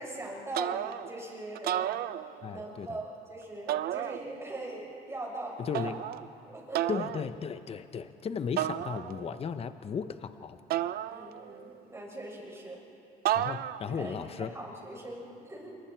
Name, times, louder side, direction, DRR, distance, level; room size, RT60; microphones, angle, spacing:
voice 1, 0.0-2.1 2.5-5.9 6.4-6.9 11.1-12.8 13.9-15.8, right 1 dB, 15° right, -3 dB, 6.8 m, -41 dB
sound 1, 0.5-1.2 1.6-2.7 3.7-4.6 5.7-6.3 6.7-7.3 8.6-9.4 10.7-11.7 13.3-14.0, right 12 dB, 65° right, 0.6 m, -32 dB
voice 2, 2.4-3.0 5.6-6.0 6.9-10.6 13.3-14.5, left 6 dB, 35° left, 11 dB, 0.8 m, -35 dB
27.5 x 23.5 x 4.6 m, 2.8 s
cardioid pair, 110°, 17 cm